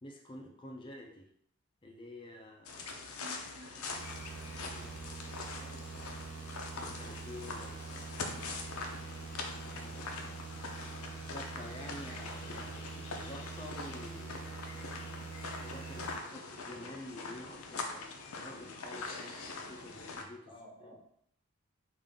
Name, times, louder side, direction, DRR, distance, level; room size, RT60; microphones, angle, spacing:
voice 1, 0.0-1.3 1.8-2.9 4.6-4.9 6.8-8.5 8.9-10.1 10.8-15.1 15.6-20.5 20.8-21.0, left 1 dB, 20° left, 0 dB, 0.5 m, -50 dB
sound 1, 2.7-20.2, left 3 dB, 80° left, 0.5 m, -43 dB
voice 2, 3.2-6.4 20.5-21.0, right 1 dB, 50° right, -9 dB, 1.4 m, -56 dB
sound 2, 4.0-16.2, right 5 dB, 80° right, 0.4 m, -45 dB
3.4 x 2.4 x 3.7 m, 0.68 s
head